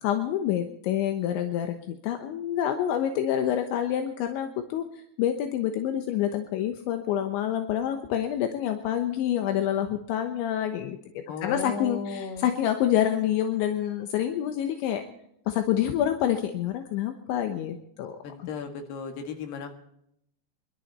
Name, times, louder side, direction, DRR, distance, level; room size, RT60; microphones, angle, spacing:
voice 1, 0.0-4.9 5.2-11.0 11.4-15.0 15.5-18.5, left 10 dB, 80° left, 6 dB, 3.3 m, -27 dB
voice 2, 11.3-12.5 18.2-19.7, left 5 dB, 65° left, 5 dB, 3.7 m, -35 dB
24.5 x 12.0 x 4.2 m, 0.74 s
omnidirectional pair, 5.4 m